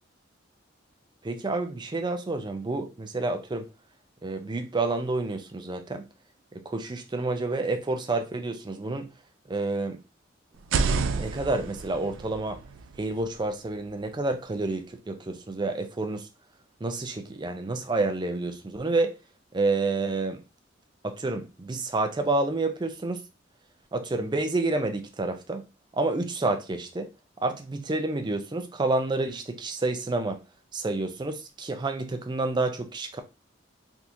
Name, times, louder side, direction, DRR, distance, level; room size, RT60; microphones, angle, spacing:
voice 1, 1.2-3.7 4.2-6.1 6.5-9.1 9.5-10.0 11.1-12.6 13.0-16.3 16.8-19.1 19.5-20.4 21.0-23.2 23.9-25.6 25.9-27.1 27.4-30.4 30.7-33.2, right 2 dB, 25° right, 0.5 m, -29 dB
sound 1, 10.5-14.4, right 4 dB, 85° right, 0.4 m, -31 dB
3.5 x 2.9 x 2.5 m
head